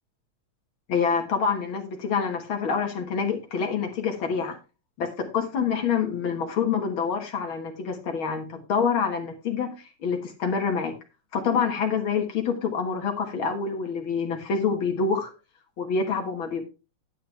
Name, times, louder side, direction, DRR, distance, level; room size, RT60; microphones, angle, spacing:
voice 1, 0.9-4.6 5.0-9.7 10.0-10.9 11.3-15.3 15.8-16.7, left 6 dB, 50° left, 5 dB, 2.0 m, -26 dB
10.5 x 8.5 x 3.3 m, 0.31 s
omnidirectional pair, 3.3 m